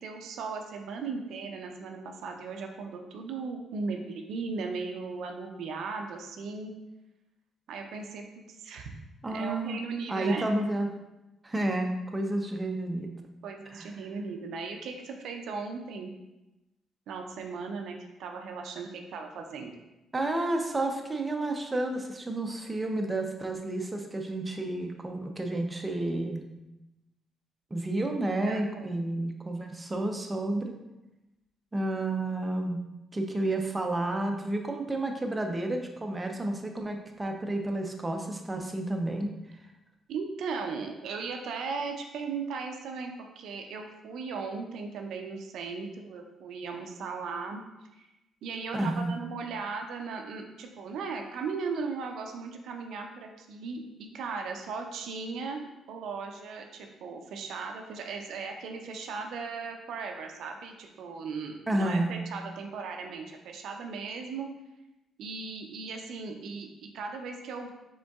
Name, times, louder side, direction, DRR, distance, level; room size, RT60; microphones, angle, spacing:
voice 1, 0.0-6.7 7.7-8.3 8.6-8.9 9.3-10.5 13.4-16.1 17.1-19.7 28.4-29.0 40.1-47.6 47.9-48.1 48.4-64.5 65.2-67.7, right 4 dB, 75° right, 3 dB, 0.5 m, -37 dB
voice 2, 9.2-9.8 10.1-10.9 11.4-13.1 13.7-13.9 20.1-26.4 27.7-30.7 31.7-32.8 33.1-39.6 48.7-49.2 61.7-62.1, right 2 dB, 20° right, 3 dB, 0.6 m, -31 dB
5.0 x 3.7 x 2.3 m, 0.98 s
cardioid pair, 90°, 0 cm